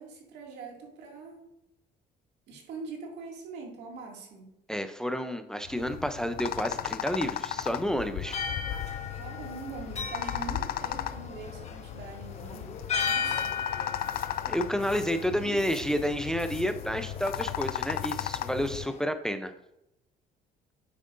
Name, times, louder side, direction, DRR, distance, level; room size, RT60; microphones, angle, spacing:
voice 1, 0.0-1.5 2.5-4.5 9.1-13.6 14.9-15.0 15.3-15.7, right 4 dB, 80° right, 0 dB, 2.3 m, -43 dB
voice 2, 4.7-8.4 14.4-19.5, equal, 5° left, 8 dB, 0.5 m, -30 dB
sound 1, 5.6-18.9, left 12 dB, 60° left, 0.4 m, -36 dB
sound 2, 8.3-19.0, left 6 dB, 40° left, 1.3 m, -37 dB
9.3 x 7.3 x 2.6 m, 0.84 s
cardioid pair, 110°, 17 cm